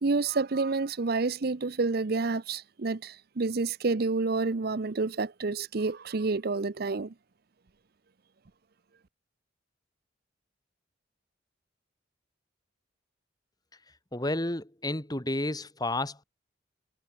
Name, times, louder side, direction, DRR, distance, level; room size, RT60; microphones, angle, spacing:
voice 1, 0.0-7.1, right 3 dB, 55° right, 0.7 m, -29 dB
voice 2, 13.7-16.2, left 1 dB, 20° left, 2.3 m, -32 dB
head